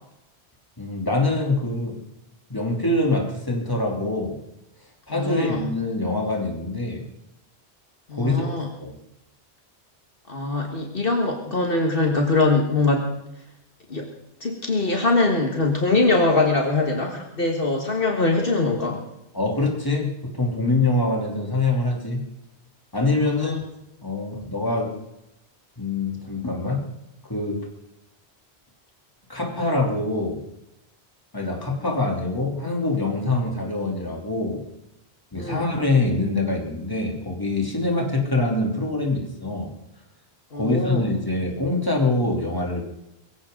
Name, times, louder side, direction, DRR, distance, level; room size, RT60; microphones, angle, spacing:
voice 1, 0.8-2.0 2.5-4.4 5.1-7.0 8.1-8.4 8.8-9.0 19.3-22.2 22.9-23.6 24.0-24.9 25.8-26.9 27.3-27.6 29.3-30.4 31.3-34.6 35.3-39.7 40.5-42.8, left 2 dB, 20° left, 0 dB, 3.0 m, -24 dB
voice 2, 5.1-5.7 8.1-8.7 10.3-13.1 13.9-14.1 14.4-19.0 23.2-23.6 35.3-35.6 40.5-41.1, left 3 dB, 55° left, 2 dB, 1.9 m, -22 dB
22.5 x 16.0 x 3.8 m, 0.84 s
omnidirectional pair, 1.1 m